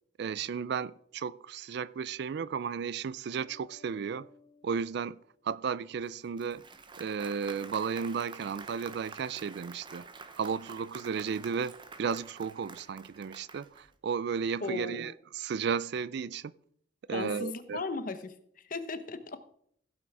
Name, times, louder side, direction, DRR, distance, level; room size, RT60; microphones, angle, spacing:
voice 1, 0.2-4.3 4.6-5.2 5.4-6.6 7.0-10.1 10.4-16.5 17.1-17.8, right 6 dB, 60° right, 0.4 m, -34 dB
sound 1, 3.4-6.0, left 4 dB, 30° left, 1.7 m, -59 dB
Applause, 6.0-13.9, right 4 dB, 25° right, 0.8 m, -48 dB
voice 2, 14.6-15.1 17.1-19.4, left 3 dB, 50° left, 0.9 m, -37 dB
16.0 x 5.9 x 4.7 m
head